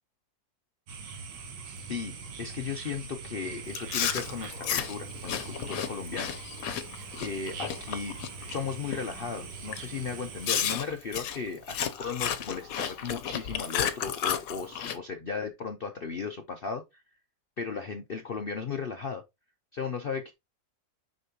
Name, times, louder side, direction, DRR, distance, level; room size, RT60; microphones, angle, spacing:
sound 1, 0.9-10.8, right 5 dB, 75° right, 1.8 m, -42 dB
voice 1, 1.6-6.4 7.2-8.2 8.5-17.0 17.6-19.2 19.7-20.3, left 5 dB, 90° left, 0.5 m, -36 dB
Chewing mastication, 3.7-8.6 8.9-9.2 9.7-9.9 10.4-15.0, left 9 dB, 60° left, 1.1 m, -33 dB
6.5 x 5.3 x 2.8 m
omnidirectional pair, 1.9 m